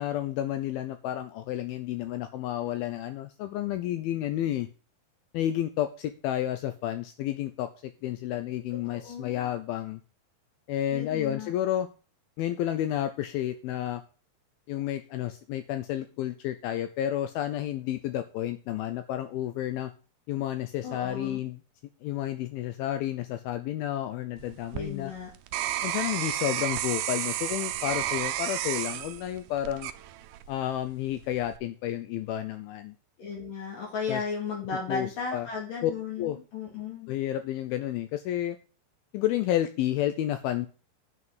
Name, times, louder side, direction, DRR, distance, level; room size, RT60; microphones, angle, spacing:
voice 1, 0.0-4.7 5.3-10.0 10.7-11.9 12.4-14.0 14.7-19.9 20.3-21.6 22.0-25.1 25.8-29.9 30.5-32.9 34.1-34.2 34.9-35.5 35.8-35.9 36.2-36.4 37.1-38.6 39.1-40.7, left 12 dB, 80° left, 10 dB, 2.4 m, -31 dB
voice 2, 8.9-9.5 10.9-11.5 20.8-21.4 24.7-25.3 33.2-37.1, left 5 dB, 60° left, -2 dB, 3.7 m, -35 dB
sound 1, 24.4-30.6 31.1-31.6, right 13 dB, 90° right, 1.8 m, -32 dB
9.6 x 6.0 x 7.8 m, 0.36 s
omnidirectional pair, 4.5 m